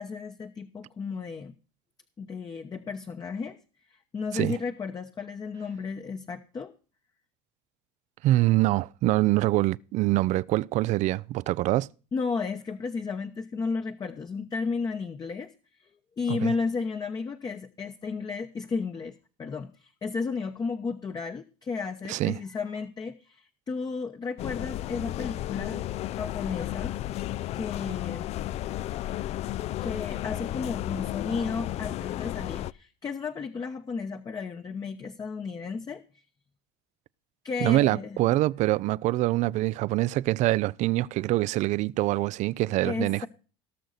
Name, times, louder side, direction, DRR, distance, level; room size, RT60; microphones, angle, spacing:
voice 1, 0.0-1.5 2.2-3.6 3.9-6.7 12.1-15.5 15.8-15.9 16.2-26.9 27.5-28.3 29.8-36.0 37.4-38.2 42.8-43.3, left 4 dB, 30° left, 0.9 m, -33 dB
voice 2, 8.2-11.9 16.3-16.5 22.1-22.4 37.6-43.3, right 17 dB, 55° right, 0.5 m, -25 dB
sound 1, 24.4-32.7, left 14 dB, 50° left, 0.4 m, -33 dB
18.5 x 6.4 x 4.0 m
supercardioid pair, 105°, 14 cm